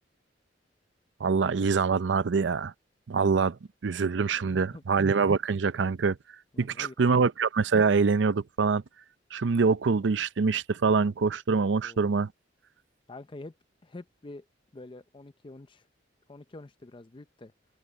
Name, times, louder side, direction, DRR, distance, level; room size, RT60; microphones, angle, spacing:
voice 1, 1.2-2.7 3.1-3.6 3.8-6.2 6.6-8.8 9.3-12.3, right 5 dB, 85° right, 0.5 m, -25 dB
voice 2, 4.4-4.8 6.5-6.9 11.8-12.1 13.1-13.6 13.8-14.4 14.7-15.9 16.3-17.5, left 2 dB, 30° left, 0.5 m, -46 dB
head